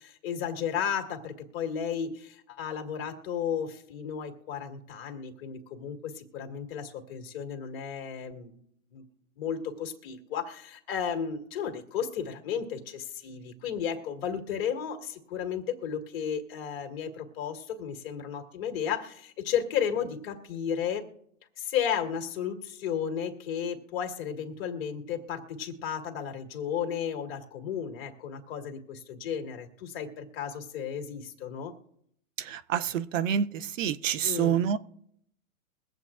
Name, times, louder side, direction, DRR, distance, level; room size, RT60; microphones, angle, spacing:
voice 1, 0.0-8.6 8.9-9.0 9.4-21.0 21.6-31.7 34.2-34.6, left 8 dB, 45° left, 4 dB, 1.8 m, -33 dB
voice 2, 32.5-33.5 33.8-34.8, right 9 dB, 65° right, 15 dB, 0.7 m, -27 dB
23.0 x 8.0 x 2.5 m, 0.72 s
hypercardioid pair, 135°, 42 cm